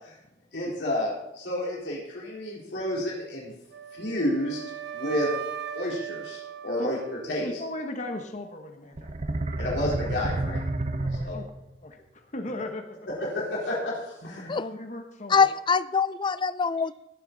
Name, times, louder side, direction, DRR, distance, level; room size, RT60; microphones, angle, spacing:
voice 1, 0.5-1.1 1.4-3.5 3.9-4.6 4.9-5.3 5.7-7.5 9.6-10.6 10.9-11.3 13.2-13.9 14.2-14.6, left 1 dB, 90° left, -5 dB, 3.8 m, -30 dB
Wind instrument woodwind instrument, 3.7-7.8, right 8 dB, 80° right, 0.8 m, -38 dB
voice 2, 7.4-9.1 11.0-11.5 11.8-13.0 14.5-15.5, left 1 dB, 45° left, 5 dB, 1.2 m, -37 dB
sound 1, 9.0-11.8, right 2 dB, 40° right, 0.7 m, -30 dB
voice 3, 15.3-16.9, left 5 dB, 25° left, 16 dB, 0.4 m, -23 dB
17.5 x 8.2 x 4.0 m, 0.89 s
head